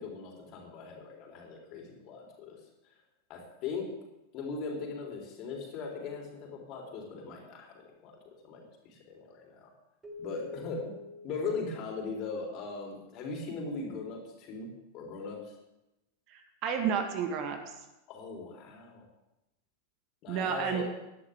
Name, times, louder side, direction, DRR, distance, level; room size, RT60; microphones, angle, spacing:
voice 1, 0.0-2.6 3.3-3.9 4.3-9.7 10.2-10.9 11.2-15.5 18.1-19.1 20.2-20.8, left 4 dB, 40° left, -1 dB, 3.9 m, -39 dB
Keyboard (musical), 10.0-13.0, left 3 dB, 15° right, 2.3 m, -47 dB
voice 2, 16.3-17.7 20.3-20.8, right 7 dB, 40° right, 6 dB, 1.7 m, -31 dB
18.5 x 11.5 x 3.7 m, 0.93 s
figure-of-eight pair, 90°, 0 cm